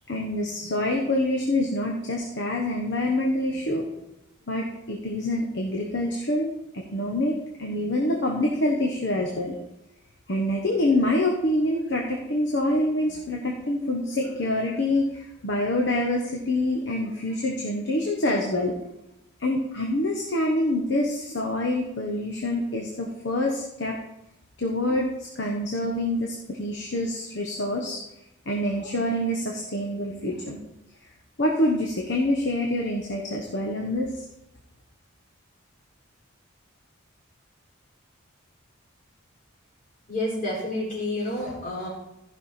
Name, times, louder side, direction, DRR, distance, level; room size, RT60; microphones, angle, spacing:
voice 1, 0.1-3.9 4.5-9.5 10.3-18.7 19.4-24.0 24.6-28.0 28.5-30.6 31.4-34.1, left 1 dB, 55° left, 0 dB, 1.1 m, -26 dB
voice 2, 40.1-41.9, left 1 dB, 40° left, -4 dB, 4.1 m, -29 dB
14.0 x 5.6 x 4.3 m, 0.90 s
head